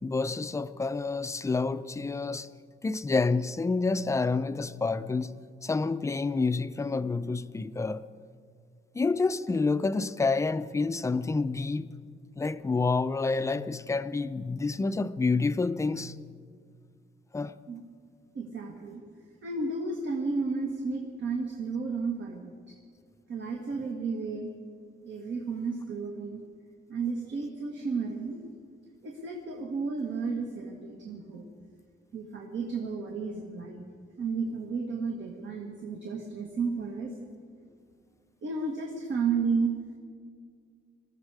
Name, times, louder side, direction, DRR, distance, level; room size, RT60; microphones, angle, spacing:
voice 1, 0.0-2.5 2.8-5.3 5.6-8.0 8.9-11.9 12.4-16.1 17.3-17.6, left 3 dB, 15° left, 0.4 m, -28 dB
voice 2, 18.3-19.0 19.4-22.8 23.3-24.5 25.0-26.4 26.9-28.4 29.0-31.5 32.1-33.8 34.2-37.1 38.4-39.8, right 4 dB, 70° right, 1.6 m, -32 dB
21.0 x 14.0 x 4.8 m
wide cardioid pair, 145°, 20 cm